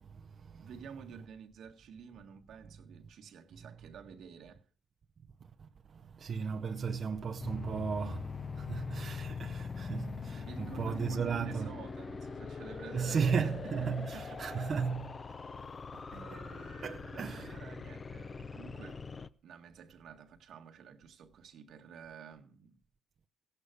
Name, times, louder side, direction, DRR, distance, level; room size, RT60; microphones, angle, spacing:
voice 1, 0.0-0.7 5.6-11.7 12.9-15.0 15.9-16.0 16.8-17.6, right 6 dB, 50° right, 0.8 m, -35 dB
voice 2, 0.5-4.6 10.4-14.7 15.3-15.7 16.1-19.0 19.4-22.8, right 7 dB, 70° right, 1.6 m, -51 dB
sound 1, 7.4-19.3, left 5 dB, 35° left, 0.8 m, -42 dB
16.5 x 8.2 x 6.9 m
cardioid pair, 90°, 0 cm